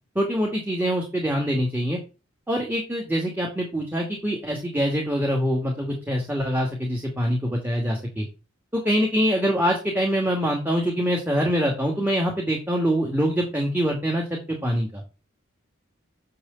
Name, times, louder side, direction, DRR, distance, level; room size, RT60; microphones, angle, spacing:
voice 1, 0.2-2.0 2.5-8.3 8.7-15.0, equal, 10° right, 0 dB, 2.3 m, -24 dB
7.6 x 6.9 x 7.1 m, 0.31 s
head